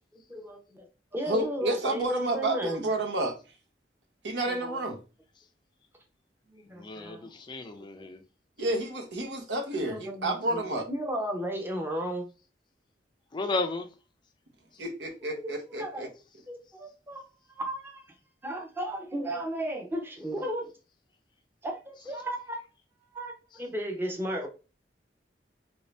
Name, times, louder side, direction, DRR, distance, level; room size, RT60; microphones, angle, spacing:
voice 1, 0.1-0.9 1.1-2.8 4.4-4.8 6.5-7.3 8.0-8.1 9.8-10.6 10.9-12.3 15.3-16.1 16.5-17.2 17.5-18.0 18.4-20.7 21.6-22.6 23.1-24.5, right 1 dB, 15° right, 0.7 m, -34 dB
voice 2, 1.3-3.3 4.2-5.0 8.6-10.9 14.8-16.1, right 2 dB, 80° right, 0.9 m, -30 dB
voice 3, 6.7-8.2 13.3-13.9, left 3 dB, 25° left, 0.4 m, -33 dB
3.0 x 2.7 x 3.2 m
head